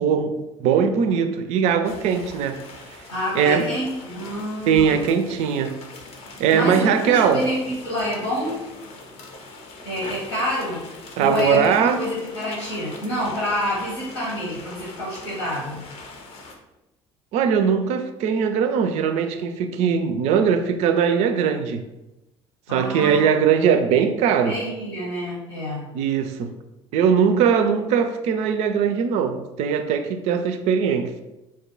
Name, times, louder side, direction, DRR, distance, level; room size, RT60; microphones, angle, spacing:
voice 1, 0.0-2.6 3.3-3.7 4.7-5.7 6.4-7.4 11.2-12.0 17.3-21.8 22.7-24.6 25.9-26.5 26.9-31.1, right 7 dB, 50° right, 8 dB, 0.4 m, -20 dB
sound 1, 1.8-16.6, left 3 dB, 45° left, 0.6 m, -42 dB
voice 2, 3.1-5.1 6.5-8.6 9.8-10.8 11.2-15.9 22.7-23.2 24.4-25.9, equal, 80° left, -7 dB, 1.0 m, -27 dB
2.7 x 2.2 x 3.7 m, 0.98 s
figure-of-eight pair, 55°, 14 cm